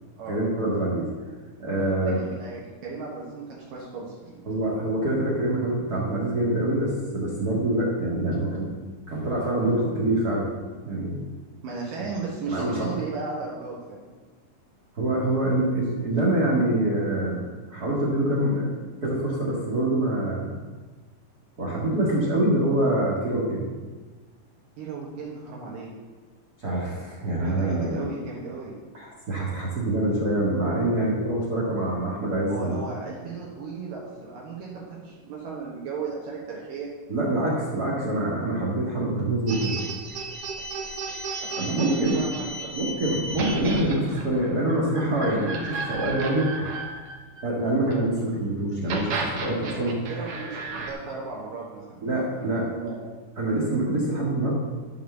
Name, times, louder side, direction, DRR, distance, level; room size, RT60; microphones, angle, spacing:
voice 1, 0.3-1.1 1.6-2.2 4.5-8.7 9.1-10.5 10.8-11.2 12.5-12.9 14.9-17.4 17.7-18.7 19.0-20.5 21.6-23.7 26.6-28.0 28.9-32.7 37.1-39.8 41.6-42.2 42.7-46.5 47.4-50.0 52.0-52.6 53.4-54.5, right 1 dB, 35° right, -5 dB, 1.7 m, -25 dB
voice 2, 2.0-4.5 11.6-14.1 24.8-25.9 27.3-28.7 32.5-36.9 41.4-43.2 49.7-50.6 50.9-53.0, right 4 dB, 75° right, -4 dB, 3.1 m, -36 dB
sound 1, 39.5-48.0 48.7-50.9, right 3 dB, 60° right, 1.7 m, -33 dB
11.0 x 5.3 x 6.9 m, 1.3 s
omnidirectional pair, 4.0 m